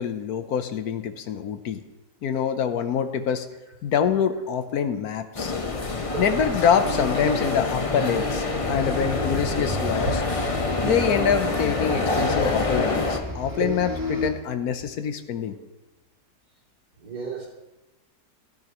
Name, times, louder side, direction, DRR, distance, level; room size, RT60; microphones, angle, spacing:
voice 1, 0.0-1.8 2.2-3.5 3.8-5.5 6.2-10.2 10.8-15.5, left 7 dB, 70° left, 9 dB, 1.2 m, -25 dB
sound 1, 5.3-13.2, left 3 dB, 25° left, 0.7 m, -26 dB
voice 2, 5.8-6.2 7.1-7.2 10.0-10.1 10.6-10.7 13.6-13.7 15.5-15.7 17.0-17.5, right 4 dB, 70° right, -5 dB, 3.6 m, -34 dB
sound 2, 8.6-14.3, left 2 dB, 10° right, 1.5 m, -33 dB
13.5 x 13.5 x 3.0 m, 1.0 s
omnidirectional pair, 1.7 m